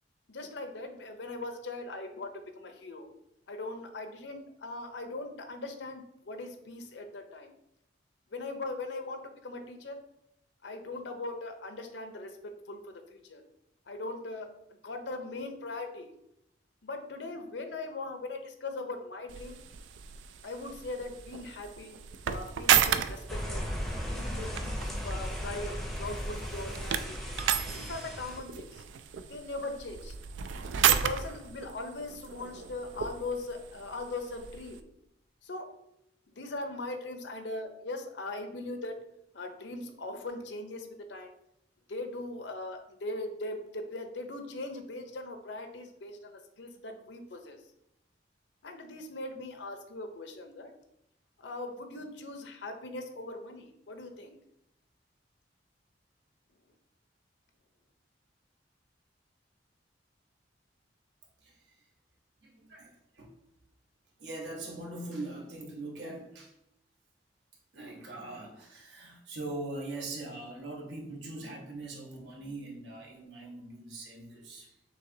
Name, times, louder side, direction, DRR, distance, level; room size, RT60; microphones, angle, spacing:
voice 1, 0.3-3.1 3.5-7.5 8.3-10.0 10.6-12.4 12.7-13.4 13.9-14.5 14.8-16.1 16.8-19.6 20.4-21.9 22.3-23.6 24.1-24.8 25.0-27.2 27.7-28.8 29.3-30.1 30.9-34.9 35.4-35.7 36.4-38.9 39.3-41.3 41.9-47.6 48.6-50.7 51.4-54.4, left 2 dB, 70° left, 6 dB, 0.6 m, -40 dB
sound 1, 19.3-34.8, right 9 dB, 85° right, 0.3 m, -33 dB
sound 2, 23.3-28.4, equal, ahead, 0.6 m, -36 dB
voice 2, 61.4-61.7 62.4-63.4 64.2-66.5 67.7-74.8, right 2 dB, 70° right, -1 dB, 1.1 m, -42 dB
6.5 x 2.8 x 2.7 m, 0.81 s
head